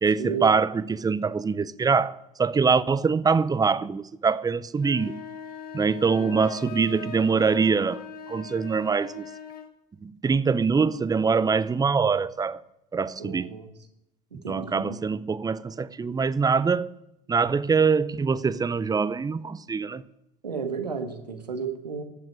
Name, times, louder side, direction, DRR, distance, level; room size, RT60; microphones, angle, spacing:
voice 1, 0.0-5.2 5.7-9.3 10.0-12.6 12.9-13.5 14.5-16.9 17.3-20.0, right 5 dB, 20° right, 0.7 m, -24 dB
sound 1, 4.7-9.7, left 6 dB, 45° left, 1.9 m, -40 dB
voice 2, 13.2-13.7 14.4-15.0 20.4-22.0, right 6 dB, 90° right, 1.8 m, -33 dB
15.0 x 7.7 x 9.2 m
figure-of-eight pair, 65°, 21 cm